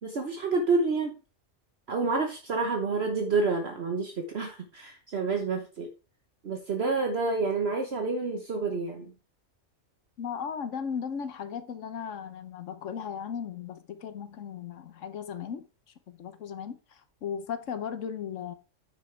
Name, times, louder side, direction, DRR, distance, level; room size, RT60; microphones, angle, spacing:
voice 1, 0.0-1.1 1.9-5.9 6.4-9.1, right 3 dB, 55° right, 1.2 m, -28 dB
voice 2, 10.2-15.7 16.1-18.5, left 7 dB, 75° left, 1.2 m, -36 dB
9.3 x 6.6 x 3.3 m
omnidirectional pair, 1.3 m